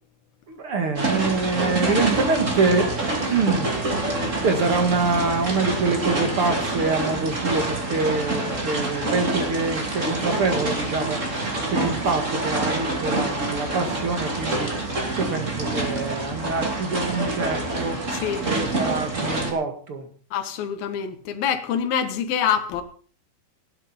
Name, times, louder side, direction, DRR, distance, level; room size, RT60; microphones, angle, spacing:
voice 1, 0.5-3.7 4.4-18.0 18.4-20.1, right 4 dB, 45° right, 2.0 m, -25 dB
sound 1, 1.0-19.5, right 2 dB, 20° right, 2.5 m, -26 dB
voice 2, 20.3-22.8, left 8 dB, 70° left, 3.2 m, -25 dB
18.0 x 12.0 x 4.4 m
omnidirectional pair, 4.5 m